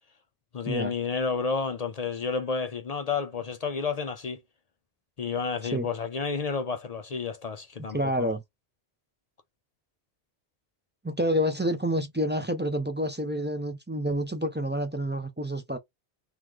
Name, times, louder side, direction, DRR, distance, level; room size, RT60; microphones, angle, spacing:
voice 1, 0.5-4.4 5.2-8.3, left 5 dB, 50° left, 0.5 m, -31 dB
voice 2, 7.9-8.4 11.0-15.8, equal, 15° right, 0.4 m, -28 dB
3.1 x 3.1 x 3.7 m
omnidirectional pair, 1.1 m